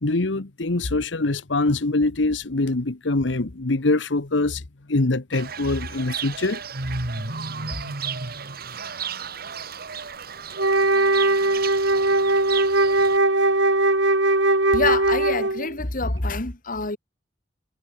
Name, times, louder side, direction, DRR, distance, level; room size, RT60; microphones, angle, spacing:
voice 1, 0.0-4.6 4.9-6.6 7.1-7.3, left 2 dB, 75° left, 1.2 m, -24 dB
Fowl / Bird, 5.3-13.2, right 5 dB, 55° right, 2.1 m, -33 dB
Wind instrument woodwind instrument, 10.6-15.7, right 2 dB, 85° right, 3.9 m, -20 dB
voice 2, 14.7-17.0, left 3 dB, 50° left, 2.3 m, -26 dB
head